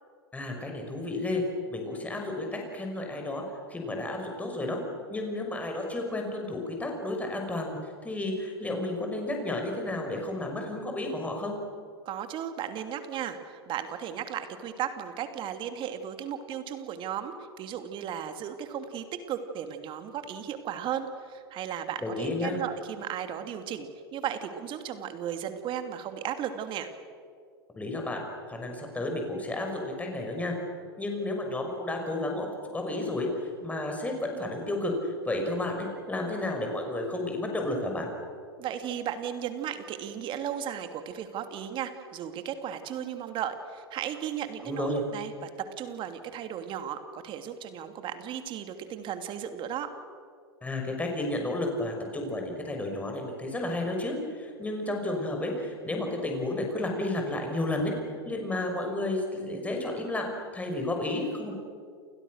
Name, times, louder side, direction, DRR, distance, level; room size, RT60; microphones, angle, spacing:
voice 1, 0.3-1.4 1.7-3.4 3.7-4.8 5.1-11.6 22.0-22.6 27.8-30.5 31.0-32.5 32.7-38.1 44.6-45.0 50.6-57.9 58.2-61.5, left 2 dB, 10° left, 2 dB, 6.3 m, -32 dB
voice 2, 12.0-26.9 38.6-49.9, right 9 dB, 35° right, 7 dB, 2.9 m, -35 dB
29.5 x 29.0 x 6.7 m, 2.1 s
figure-of-eight pair, 95°, 14 cm